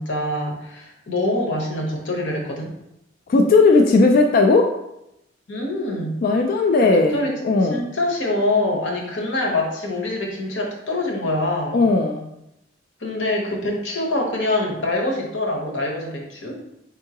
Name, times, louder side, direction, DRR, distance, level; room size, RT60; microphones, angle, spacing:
voice 1, 0.0-2.7 5.5-6.2 6.8-7.3 7.7-11.8 13.0-16.6, left 2 dB, 85° left, 0 dB, 1.1 m, -25 dB
voice 2, 3.3-4.8 6.2-7.8 11.7-12.3, left 3 dB, 50° left, 2 dB, 0.3 m, -17 dB
4.6 x 3.6 x 2.9 m, 0.84 s
head